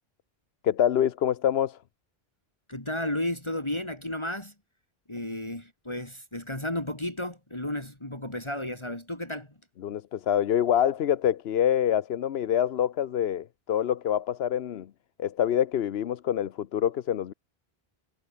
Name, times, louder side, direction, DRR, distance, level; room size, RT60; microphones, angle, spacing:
voice 1, 0.6-1.8 9.8-14.9 15.2-17.3, left 10 dB, 80° left, 1.0 m, -26 dB
voice 2, 2.7-4.5 5.1-9.5, left 1 dB, 25° left, 3.3 m, -33 dB
omnidirectional pair, 1.0 m